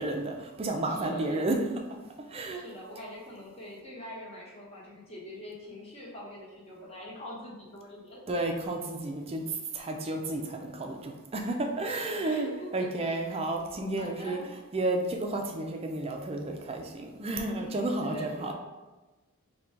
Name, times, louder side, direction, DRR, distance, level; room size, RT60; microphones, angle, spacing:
voice 1, 0.0-1.6 2.3-2.6 8.3-9.4 9.7-14.4 14.7-18.5, right 2 dB, 25° right, 2 dB, 0.4 m, -32 dB
voice 2, 0.9-1.6 2.5-8.2 11.7-13.4 14.0-14.4 17.5-18.5, equal, 30° left, -5 dB, 1.0 m, -44 dB
3.8 x 2.3 x 4.4 m, 1.2 s
head